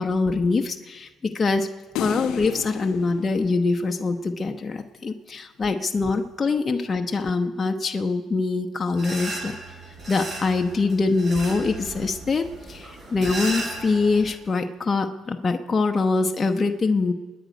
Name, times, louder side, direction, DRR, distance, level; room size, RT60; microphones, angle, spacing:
voice 1, 0.0-1.7 2.0-9.6 10.1-17.1, left 3 dB, 35° left, 5 dB, 0.9 m, -24 dB
sound 1, 2.0-4.4, left 12 dB, 85° left, 0.5 m, -33 dB
sound 2, 9.0-14.3, right 2 dB, 40° right, 7.4 m, -35 dB
27.0 x 10.5 x 5.2 m, 1.2 s
cardioid pair, 85°, 0 cm